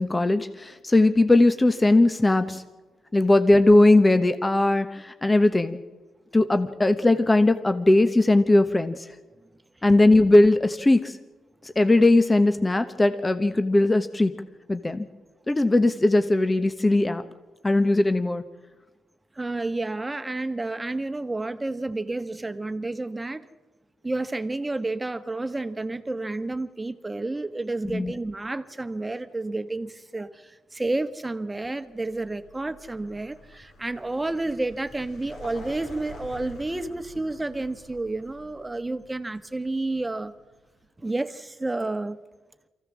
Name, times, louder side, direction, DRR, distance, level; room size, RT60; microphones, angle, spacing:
voice 1, 0.0-2.6 3.1-5.8 6.3-9.0 9.8-11.2 11.6-14.3 14.7-15.1 15.5-17.2 17.6-18.4 27.9-28.1, left 2 dB, 20° left, 10 dB, 1.2 m, -19 dB
voice 2, 19.3-23.5 24.0-40.3 41.0-42.2, right 2 dB, 20° right, 11 dB, 1.3 m, -30 dB
Vehicle, 31.9-40.7, left 1 dB, 75° left, 4.8 m, -47 dB
24.0 x 15.5 x 7.4 m, 1.2 s
supercardioid pair, 60°, 0 cm